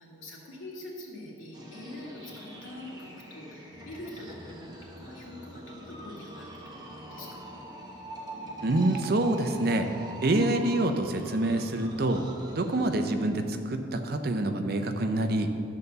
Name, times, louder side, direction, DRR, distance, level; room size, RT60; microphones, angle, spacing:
voice 1, 0.0-7.6, left 1 dB, 90° left, -4 dB, 2.2 m, -44 dB
sound 1, 1.5-13.1, right 1 dB, 20° right, 1.0 m, -44 dB
voice 2, 8.6-9.9 10.2-12.2 12.5-15.5, right 1 dB, 50° right, 6 dB, 0.6 m, -26 dB
11.5 x 4.1 x 6.7 m, 2.7 s
head